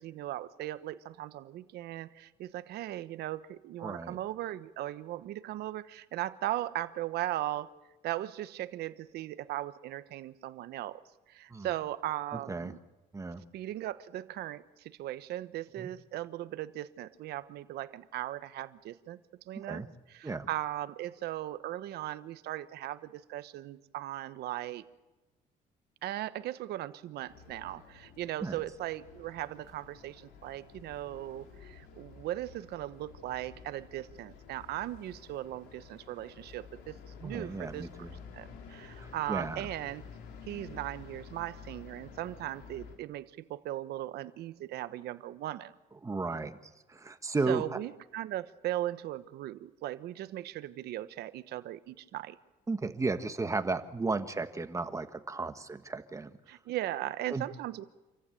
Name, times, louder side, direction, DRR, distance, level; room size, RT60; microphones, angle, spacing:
voice 1, 0.0-7.7 8.0-11.0 11.3-12.8 13.5-19.2 19.5-24.9 26.0-37.9 38.3-40.0 40.5-45.7 47.5-52.4 56.5-57.8, right 14 dB, 75° right, 13 dB, 1.0 m, -38 dB
voice 2, 3.8-4.2 11.5-11.7 12.5-12.7 13.1-13.4 15.8-15.9 19.5-19.9 20.2-20.5 28.4-28.6 37.2-38.1 39.0-39.7 46.0-46.6 46.9-47.8 52.7-56.4 57.3-57.4, right 3 dB, 20° right, 9 dB, 1.5 m, -34 dB
sound 1, 27.3-43.0, left 6 dB, 90° left, 3.2 m, -51 dB
27.0 x 15.0 x 9.0 m, 1.1 s
cardioid pair, 110°, 17 cm